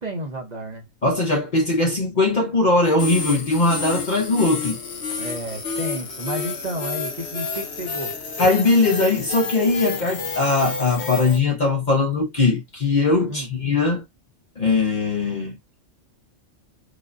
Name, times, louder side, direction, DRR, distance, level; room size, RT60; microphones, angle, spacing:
voice 1, 0.0-0.8 5.2-8.2 13.2-13.5, right 1 dB, 40° right, 0.9 m, -32 dB
voice 2, 1.0-4.8 8.4-14.0 14.6-15.6, left 3 dB, 40° left, 0.8 m, -20 dB
sound 1, 3.0-11.4, left 4 dB, 60° left, 1.1 m, -30 dB
5.0 x 2.2 x 2.5 m
omnidirectional pair, 1.3 m